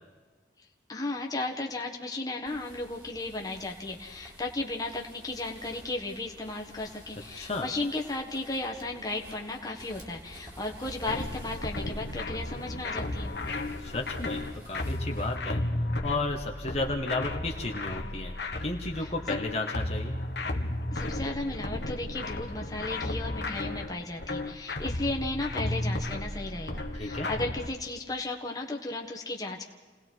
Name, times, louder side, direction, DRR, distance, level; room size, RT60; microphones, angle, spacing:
voice 1, 0.9-13.3 19.0-19.1 20.9-29.6, left 2 dB, 20° left, 1 dB, 1.7 m, -35 dB
sound 1, 2.4-15.4, equal, 20° right, 2.9 m, -51 dB
voice 2, 7.4-7.7 13.8-15.6 16.0-18.4 18.6-20.2 26.9-27.3, left 2 dB, 35° left, 0 dB, 1.5 m, -33 dB
sound 2, 11.1-27.7, left 1 dB, 70° left, 1.6 m, -34 dB
29.0 x 19.0 x 4.7 m, 1.4 s
head